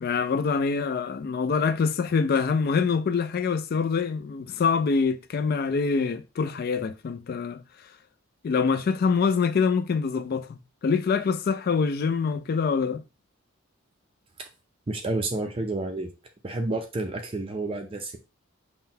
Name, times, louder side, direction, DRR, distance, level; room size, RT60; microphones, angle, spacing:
voice 1, 0.0-7.6 8.4-13.0, left 5 dB, 45° left, 0.3 m, -25 dB
voice 2, 14.9-16.1 16.4-18.2, right 2 dB, 25° right, 0.4 m, -30 dB
5.7 x 2.2 x 2.7 m
head